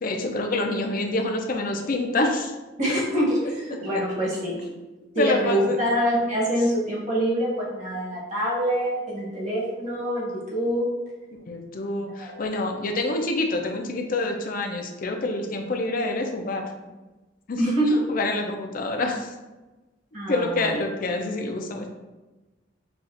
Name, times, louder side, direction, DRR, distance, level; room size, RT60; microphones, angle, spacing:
voice 1, 0.0-2.5 2.9-3.0 5.1-5.8 11.5-16.6 17.5-17.6 18.1-19.3 20.3-21.9, left 2 dB, 45° left, 3 dB, 0.5 m, -27 dB
voice 2, 2.8-4.6 5.1-10.8 12.2-12.4 17.6-18.0 20.1-20.7, equal, 40° right, -5 dB, 1.2 m, -25 dB
5.5 x 2.4 x 2.6 m, 1.1 s
head